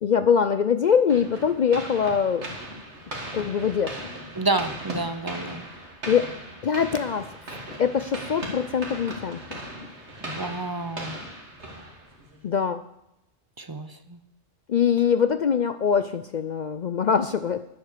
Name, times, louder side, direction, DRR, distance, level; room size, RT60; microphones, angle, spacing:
voice 1, 0.0-2.4 3.3-4.1 6.1-7.3 7.8-9.6 12.4-12.8 14.7-17.6, left 7 dB, 55° left, 11 dB, 0.5 m, -23 dB
sound 1, 1.1-12.4, right 1 dB, 90° right, 2.6 m, -38 dB
voice 2, 4.4-5.6 10.2-11.2 13.6-14.2, right 2 dB, 25° right, 10 dB, 0.6 m, -29 dB
10.0 x 9.7 x 6.7 m, 0.83 s
omnidirectional pair, 1.1 m